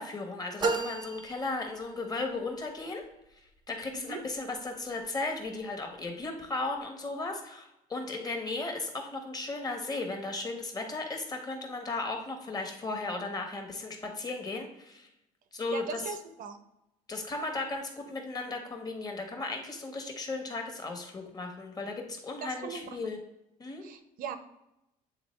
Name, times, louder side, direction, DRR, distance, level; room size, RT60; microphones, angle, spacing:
voice 1, 0.0-3.0 3.7-15.1 15.5-16.0 17.1-23.2 23.6-23.8, left 3 dB, 25° left, 2 dB, 1.3 m, -36 dB
sound 1, 0.6-2.3, right 4 dB, 25° right, 0.6 m, -33 dB
voice 2, 15.7-16.6 22.4-22.9 23.8-24.4, right 6 dB, 65° right, 9 dB, 0.7 m, -39 dB
8.0 x 3.7 x 3.2 m, 0.86 s
cardioid pair, 115°, 16 cm